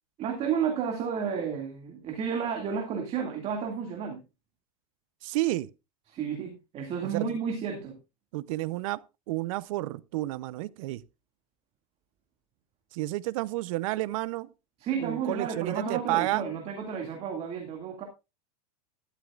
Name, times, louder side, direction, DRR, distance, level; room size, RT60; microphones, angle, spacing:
voice 1, 0.2-4.2 6.1-8.0 14.8-18.0, right 7 dB, 35° right, 2.2 m, -32 dB
voice 2, 5.2-5.7 7.0-7.3 8.3-9.0 9.3-11.0 12.9-14.5 15.0-16.4, right 18 dB, 60° right, 0.7 m, -30 dB
12.5 x 12.5 x 2.4 m
supercardioid pair, 140°, 19 cm